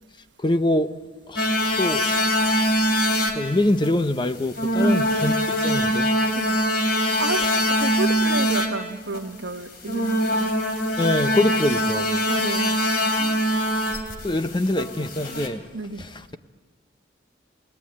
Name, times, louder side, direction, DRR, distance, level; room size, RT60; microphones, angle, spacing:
voice 1, 0.4-0.9 1.3-2.0 3.3-6.2 11.0-12.2 14.2-15.6 16.0-16.4, left 1 dB, 25° left, 0.8 m, -24 dB
sound 1, 1.4-3.5 3.7-3.9 4.5-8.7 9.1-9.3 9.8-15.5, equal, 55° left, 3.0 m, -23 dB
voice 2, 4.8-5.1 6.4-6.6 7.2-7.5 7.8-10.5 12.3-12.8 13.2-13.5 15.7-16.1, right 3 dB, 70° right, 1.3 m, -31 dB
29.0 x 19.5 x 8.8 m
head